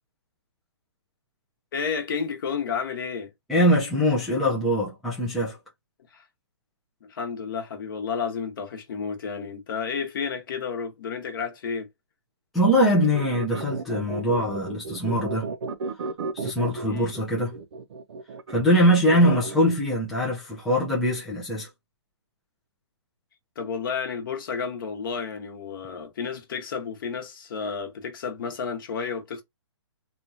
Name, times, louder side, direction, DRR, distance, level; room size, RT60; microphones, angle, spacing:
voice 1, 1.7-3.3 6.1-6.2 7.1-11.9 16.8-17.1 19.1-19.4 23.6-29.4, left 6 dB, 45° left, 0.9 m, -31 dB
voice 2, 3.5-5.6 12.5-15.5 16.3-17.6 18.5-21.7, equal, ahead, 0.3 m, -22 dB
sound 1, 13.0-19.7, right 4 dB, 65° right, 0.5 m, -34 dB
2.9 x 2.3 x 2.5 m
hypercardioid pair, 160°, 15 cm